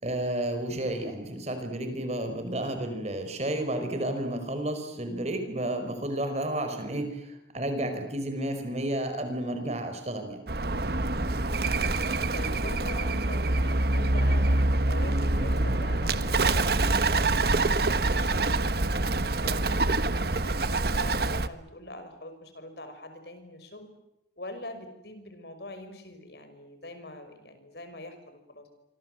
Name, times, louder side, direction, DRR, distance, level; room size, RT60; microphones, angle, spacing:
voice 1, 0.0-10.4, right 1 dB, 40° right, 7 dB, 5.1 m, -31 dB
Bird, 10.5-21.5, right 2 dB, 60° right, 1.3 m, -25 dB
voice 2, 11.4-12.0 12.3-19.0 19.4-23.9 24.4-28.7, left 1 dB, 65° left, 8 dB, 5.7 m, -44 dB
27.5 x 25.5 x 7.9 m, 0.90 s
head